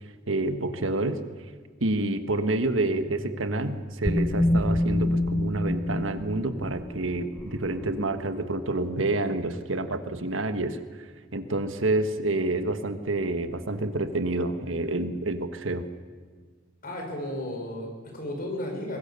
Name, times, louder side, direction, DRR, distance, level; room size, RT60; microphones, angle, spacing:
voice 1, 0.3-1.2 1.8-15.8, right 2 dB, 75° right, 9 dB, 1.4 m, -28 dB
sound 1, 2.6-8.0, left 1 dB, 10° left, 1.2 m, -28 dB
voice 2, 16.8-19.0, left 1 dB, 45° left, 2 dB, 5.2 m, -34 dB
23.5 x 20.5 x 6.9 m, 1.6 s
head